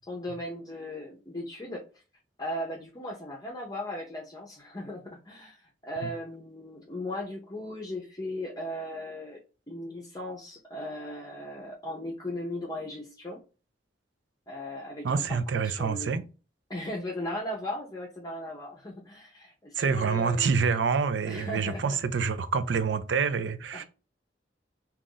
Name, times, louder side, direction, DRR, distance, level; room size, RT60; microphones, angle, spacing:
voice 1, 0.1-1.8 2.4-5.6 5.8-9.4 9.7-13.4 14.5-16.2 16.7-20.6 21.3-22.0 23.7-23.8, left 1 dB, 20° left, 0.6 m, -37 dB
voice 2, 15.0-16.2 19.8-23.8, right 5 dB, 85° right, 0.5 m, -27 dB
2.9 x 2.5 x 3.7 m
head